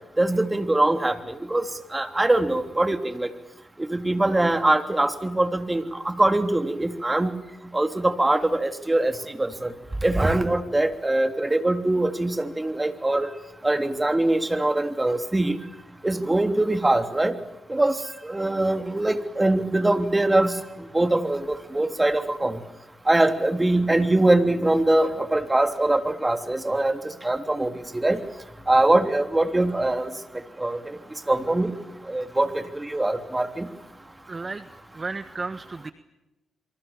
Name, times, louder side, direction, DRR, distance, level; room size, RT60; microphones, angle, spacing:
voice 1, 0.2-1.6 1.9-3.3 3.9-7.3 7.7-9.7 10.0-13.3 13.6-15.6 16.0-17.4 17.7-18.0 18.2-20.6 20.9-22.6 23.1-28.2 28.7-30.1 30.6-31.0 31.3-31.7 32.1-33.7, right 2 dB, 20° right, 8 dB, 3.2 m, -23 dB
voice 2, 34.3-34.7 35.0-35.9, right 3 dB, 35° right, 12 dB, 1.3 m, -33 dB
27.0 x 24.0 x 7.2 m, 0.96 s
hypercardioid pair, 40°, 0 cm